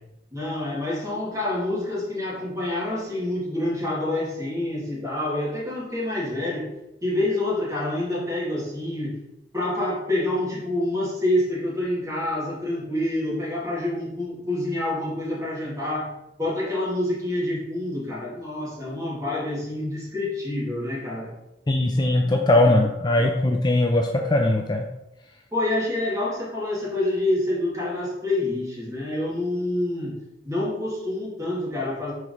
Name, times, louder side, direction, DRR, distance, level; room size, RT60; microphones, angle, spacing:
voice 1, 0.3-6.7 7.0-9.1 9.5-16.1 16.4-21.3 21.9-22.4 25.5-30.2 30.4-32.1, left 1 dB, 15° right, -7 dB, 2.6 m, -27 dB
voice 2, 21.7-24.8, left 1 dB, 25° left, 2 dB, 0.5 m, -20 dB
4.9 x 4.5 x 5.4 m, 0.90 s
head